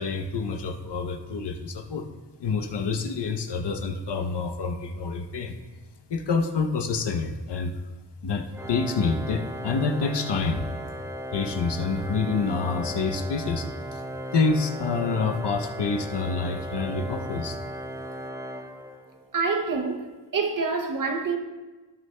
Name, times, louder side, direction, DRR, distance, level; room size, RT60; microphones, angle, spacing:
voice 1, 0.0-2.1 2.4-5.6 6.1-7.9 8.2-10.7 11.3-14.0 14.3-17.6, left 4 dB, 65° left, 0.8 m, -27 dB
Organ, 8.5-19.3, equal, 5° right, 0.4 m, -37 dB
voice 2, 19.3-20.1 20.3-21.4, right 4 dB, 45° right, 0.8 m, -26 dB
17.5 x 6.5 x 2.2 m
wide cardioid pair, 160°, 44 cm